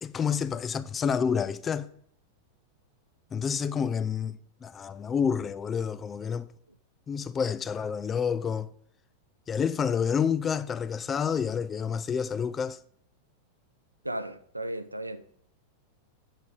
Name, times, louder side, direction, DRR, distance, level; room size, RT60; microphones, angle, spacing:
voice 1, 0.0-1.9 3.3-6.5 7.1-8.7 9.5-12.8, left 7 dB, 20° left, 0.3 m, -29 dB
voice 2, 14.0-15.2, right 1 dB, 85° right, 0.4 m, -35 dB
8.2 x 4.1 x 4.9 m
figure-of-eight pair, 90°, 0 cm